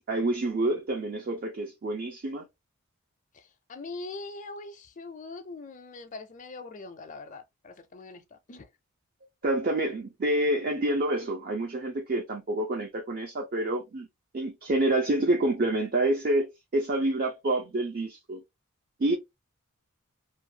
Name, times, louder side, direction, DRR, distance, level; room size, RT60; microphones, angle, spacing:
voice 1, 0.0-2.5 9.4-14.1 14.3-18.4 19.0-19.2, right 1 dB, 45° right, 0.4 m, -28 dB
voice 2, 3.3-8.7, left 3 dB, 35° left, 0.4 m, -42 dB
2.5 x 2.2 x 2.7 m
head